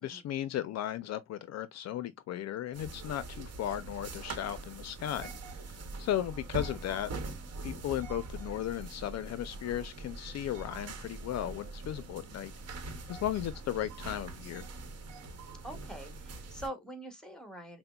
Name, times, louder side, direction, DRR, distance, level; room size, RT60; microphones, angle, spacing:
voice 1, 0.0-5.3 6.0-7.1 7.6-14.7, left 11 dB, 60° left, 0.4 m, -36 dB
sound 1, 2.7-16.7, right 2 dB, 55° right, 1.0 m, -43 dB
voice 2, 15.6-17.8, right 1 dB, ahead, 1.3 m, -44 dB
5.6 x 2.0 x 2.2 m
cardioid pair, 90°, 30 cm